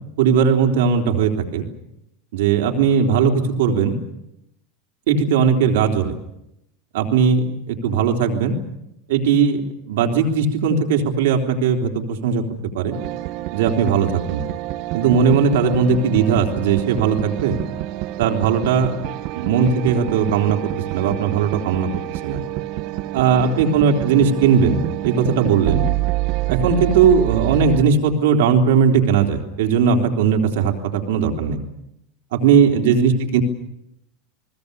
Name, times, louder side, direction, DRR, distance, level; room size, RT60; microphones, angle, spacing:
voice 1, 0.2-1.7 2.3-4.0 5.1-6.2 6.9-8.6 9.1-12.4 12.7-13.0 13.5-14.4 14.9-17.6 18.2-18.9 19.3-20.6 20.9-21.9 22.2-22.4 23.1-25.8 26.5-31.6 32.3-33.4, right 6 dB, 75° right, 4 dB, 3.6 m, -18 dB
sound 1, 12.9-27.8, right 16 dB, 60° right, 1.7 m, -27 dB
29.0 x 20.5 x 7.0 m, 0.83 s
hypercardioid pair, 100°, 0 cm